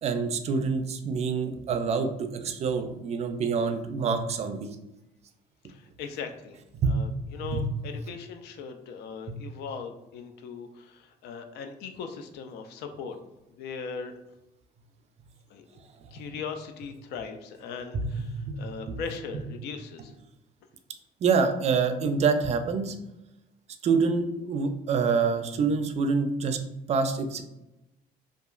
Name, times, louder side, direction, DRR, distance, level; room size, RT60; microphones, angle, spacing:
voice 1, 0.0-4.7 6.8-6.9 7.3-7.7 9.3-9.4 16.0-16.2 17.9-18.6 18.9-19.0 21.2-22.9 23.8-26.6 26.9-27.4, right 5 dB, 40° right, 7 dB, 0.4 m, -26 dB
voice 2, 5.7-6.6 6.9-13.2 13.6-14.1 15.5-15.6 16.1-20.1, left 5 dB, 80° left, 6 dB, 0.4 m, -39 dB
2.8 x 2.3 x 2.4 m, 0.92 s
cardioid pair, 110°, 17 cm